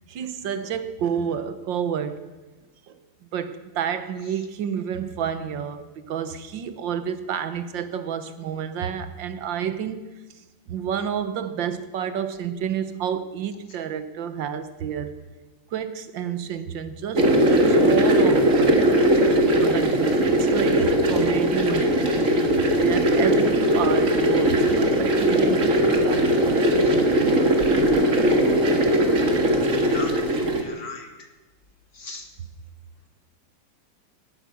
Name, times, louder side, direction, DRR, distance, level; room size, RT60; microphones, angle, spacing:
voice 1, 0.1-2.3 2.9-3.0 3.3-10.1 10.7-15.1 15.7-18.7 19.6-22.2 22.5-26.9, right 8 dB, 65° right, 10 dB, 1.7 m, -30 dB
sound 1, 17.1-30.6, right 1 dB, 40° right, 2.0 m, -19 dB
voice 2, 30.6-31.1 32.0-32.2, left 3 dB, 45° left, 4 dB, 2.1 m, -36 dB
17.5 x 12.0 x 6.3 m, 1.2 s
omnidirectional pair, 2.4 m